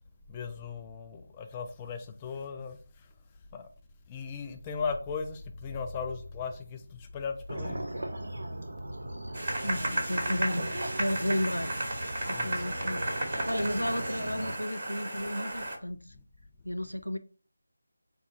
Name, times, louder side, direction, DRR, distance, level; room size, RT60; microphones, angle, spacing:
voice 1, 0.3-3.1 3.5-3.7 4.1-7.9 12.3-12.8, left 5 dB, 15° left, 0.3 m, -37 dB
sound 1, 7.5-14.6, right 1 dB, 60° right, 0.6 m, -38 dB
sound 2, 9.3-15.8, right 1 dB, 30° right, 1.0 m, -34 dB
voice 2, 9.6-11.7 12.3-16.1 16.6-17.2, left 1 dB, 90° left, 0.5 m, -33 dB
4.2 x 2.4 x 3.8 m
figure-of-eight pair, 160°, 0 cm